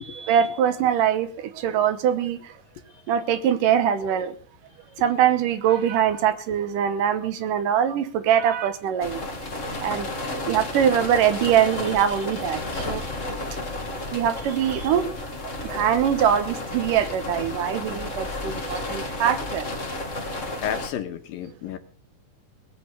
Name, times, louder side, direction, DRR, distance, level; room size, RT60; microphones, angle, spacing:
voice 1, 0.0-2.5 3.1-4.4 5.0-9.2 9.8-10.1 10.5-13.0 14.1-15.1 15.6-19.7, right 9 dB, 70° right, 2.5 m, -23 dB
sound 1, 9.0-20.9, left 2 dB, 25° left, 2.1 m, -32 dB
voice 2, 20.6-21.8, left 9 dB, 80° left, 3.2 m, -32 dB
19.0 x 7.7 x 6.8 m
omnidirectional pair, 4.1 m